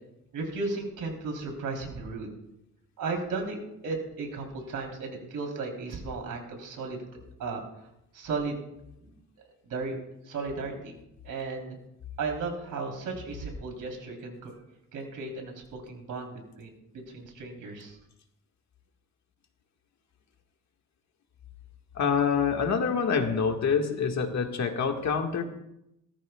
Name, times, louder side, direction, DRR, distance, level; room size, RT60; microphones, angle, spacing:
voice 1, 0.3-2.4 3.0-7.0 7.4-7.6 8.1-8.6 9.0-9.1 9.6-10.0 10.2-11.0 11.2-11.8 12.2-14.5 14.9-18.0, right 3 dB, 80° right, 1 dB, 3.5 m, -35 dB
voice 2, 22.0-25.4, left 6 dB, 60° left, 4 dB, 1.7 m, -26 dB
19.0 x 14.0 x 2.3 m, 0.83 s
cardioid pair, 125°, 32 cm